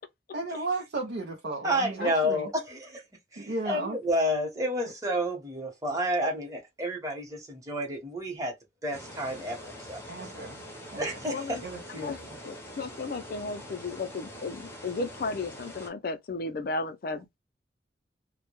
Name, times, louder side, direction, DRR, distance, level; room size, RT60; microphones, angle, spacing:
voice 1, 0.3-2.5 3.4-4.0 10.1-10.6 10.9-11.2 11.6-12.1, right 2 dB, 70° right, 0.5 m, -34 dB
voice 2, 1.6-3.0 3.3-8.5 8.8-10.0 11.0-11.6, equal, 20° right, 0.9 m, -30 dB
sound 1, 8.9-15.9, equal, 15° left, 0.6 m, -44 dB
voice 3, 11.3-11.6 12.0-17.3, left 3 dB, 55° left, 0.4 m, -34 dB
2.2 x 2.1 x 2.9 m
head